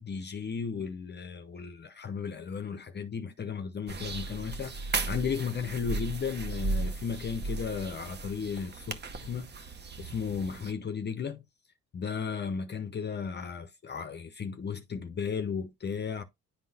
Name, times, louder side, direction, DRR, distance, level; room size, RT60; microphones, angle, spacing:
voice 1, 0.0-9.7 10.0-11.4 11.9-16.2, left 6 dB, 35° left, 0.6 m, -35 dB
sound 1, 3.9-10.7, right 3 dB, 35° right, 0.8 m, -36 dB
10.0 x 3.7 x 2.7 m
cardioid pair, 90°, 30 cm